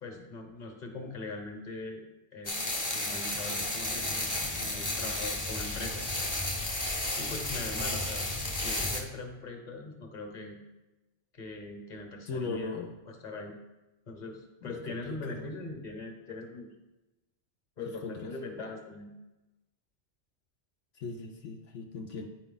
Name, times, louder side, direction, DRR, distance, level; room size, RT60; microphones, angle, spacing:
voice 1, 0.0-2.0 2.3-2.6 2.9-6.0 7.1-8.2 8.5-10.6 11.3-13.5 14.1-16.7 17.8-19.1, left 3 dB, 40° left, 3 dB, 1.2 m, -41 dB
sound 1, 2.4-9.0, left 2 dB, 20° left, 0.7 m, -33 dB
voice 2, 12.3-12.9 14.6-15.5 18.0-18.1 21.0-22.3, left 4 dB, 80° left, 2 dB, 1.0 m, -38 dB
9.5 x 4.7 x 3.9 m, 1.0 s
omnidirectional pair, 1.3 m